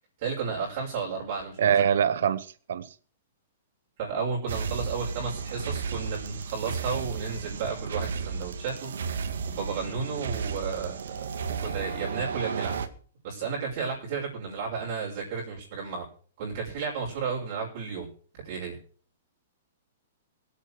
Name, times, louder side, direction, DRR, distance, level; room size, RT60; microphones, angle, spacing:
voice 1, 0.2-1.8 4.0-8.9 9.5-11.0 11.4-12.8 13.2-16.1 16.4-18.1 18.3-18.8, right 5 dB, 35° right, 6.1 m, -33 dB
voice 2, 1.6-2.9, right 8 dB, 65° right, 0.9 m, -24 dB
sound 1, 4.5-12.9, right 5 dB, 80° right, 2.1 m, -33 dB
22.5 x 8.5 x 4.8 m
hypercardioid pair, 175°, 0 cm